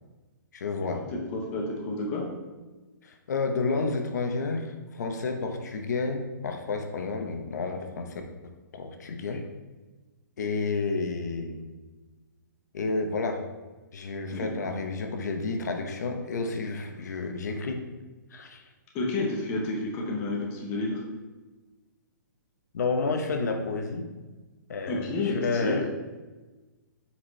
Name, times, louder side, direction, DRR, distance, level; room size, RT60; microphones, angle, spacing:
voice 1, 0.5-1.0 3.0-8.2 8.7-9.4 10.4-11.7 12.7-13.4 13.9-17.8 18.3-18.6 22.7-24.1 24.7-25.9, left 3 dB, 60° left, 5 dB, 0.8 m, -30 dB
voice 2, 1.3-2.2 14.3-14.5 18.9-21.0 24.9-25.8, left 2 dB, 15° left, -2 dB, 0.7 m, -30 dB
7.3 x 4.3 x 3.1 m, 1.2 s
hypercardioid pair, 175°, 10 cm